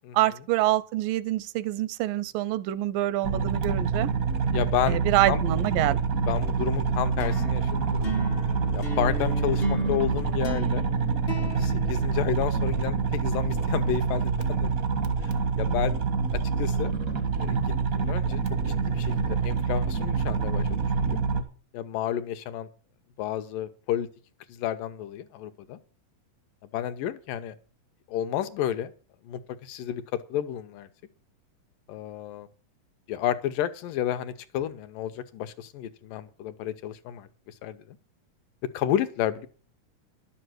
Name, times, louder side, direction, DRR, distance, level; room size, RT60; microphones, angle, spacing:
voice 1, 0.1-4.1 4.9-6.0, right 15 dB, 85° right, 2.3 m, -26 dB
sound 1, 3.2-21.4, right 5 dB, 65° right, 0.8 m, -26 dB
voice 2, 4.5-5.0 5.3-5.4 6.3-8.3 8.7-10.8 11.4-14.7 15.6-15.9 16.6-16.9 17.4-17.6 17.9-20.8 21.1-21.2 21.7-22.7 23.2-24.1 24.5-25.8 26.7-27.6 28.1-28.9 29.3-30.0 30.3-30.9 31.9-32.5 33.1-37.3 37.6-37.8 38.7-39.5, left 11 dB, 80° left, 2.5 m, -31 dB
sound 2, 7.2-12.8, right 1 dB, 50° left, 0.6 m, -35 dB
11.5 x 7.7 x 7.8 m
omnidirectional pair, 3.9 m